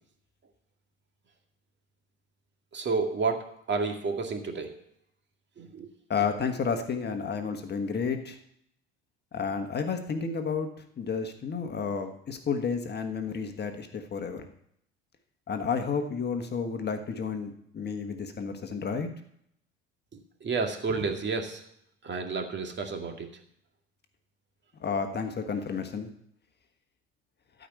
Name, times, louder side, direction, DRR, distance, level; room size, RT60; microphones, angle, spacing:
voice 1, 2.7-4.7 5.6-5.9 20.1-21.6 22.0-23.3, right 4 dB, 35° right, 4 dB, 2.2 m, -31 dB
voice 2, 6.1-8.4 9.3-10.7 11.0-14.4 15.5-19.1 24.8-26.1, left 5 dB, 30° left, 6 dB, 1.5 m, -31 dB
13.5 x 5.2 x 8.1 m, 0.71 s
hypercardioid pair, 70°, 32 cm